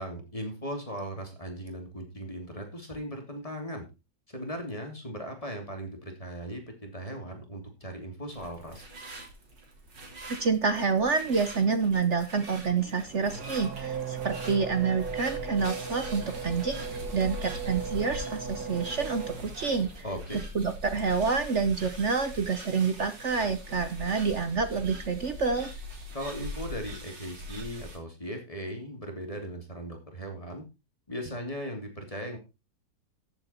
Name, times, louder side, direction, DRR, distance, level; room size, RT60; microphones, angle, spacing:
voice 1, 0.0-3.9 4.3-8.9 20.0-20.4 26.1-30.6 31.1-32.4, equal, 20° left, 3 dB, 3.0 m, -38 dB
sound 1, 8.3-28.0, equal, 85° right, 3.7 m, -42 dB
voice 2, 10.4-20.0 20.5-25.7, right 5 dB, 50° right, 9 dB, 1.1 m, -28 dB
Race car auto racing / Accelerating revving vroom, 12.8-20.0, right 6 dB, 65° right, 2.1 m, -38 dB
13.5 x 7.9 x 4.4 m, 0.29 s
omnidirectional pair, 1.9 m